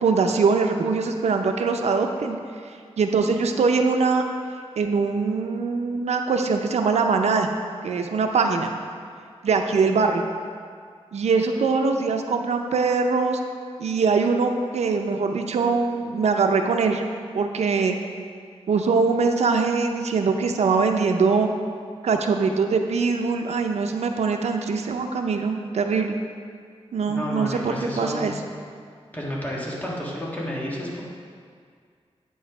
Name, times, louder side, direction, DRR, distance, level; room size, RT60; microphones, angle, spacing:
voice 1, 0.0-2.4 3.0-4.2 4.8-7.5 7.8-8.7 9.4-10.2 11.1-13.4 13.8-17.0 17.3-17.9 18.7-21.5 22.0-26.1 26.9-28.3, right 4 dB, 85° right, 4 dB, 0.5 m, -22 dB
voice 2, 27.1-28.3 29.1-31.0, equal, 15° left, -5 dB, 1.6 m, -31 dB
8.6 x 5.5 x 4.8 m, 2.1 s
wide cardioid pair, 145°, 11 cm